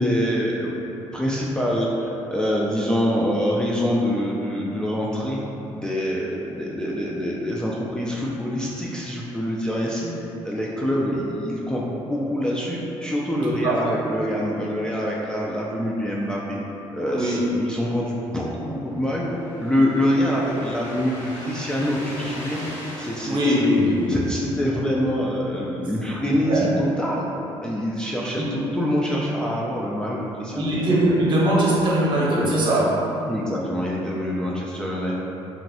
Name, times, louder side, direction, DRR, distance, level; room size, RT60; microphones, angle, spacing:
voice 1, 0.0-5.4 5.7-10.1 10.4-16.6 16.9-19.3 19.6-22.6 23.0-23.5 24.1-27.3 27.6-30.8 33.3-35.1, equal, 5° left, -5 dB, 0.3 m, -25 dB
voice 2, 13.4-13.8 17.1-17.5 23.2-24.1 26.5-26.7 28.4-28.5 30.5-33.1, right 1 dB, 45° right, -6 dB, 0.8 m, -21 dB
sound 1, 18.4-24.7, equal, 75° left, 1.0 m, -40 dB
3.0 x 2.5 x 2.7 m, 2.9 s
cardioid pair, 95°, 11 cm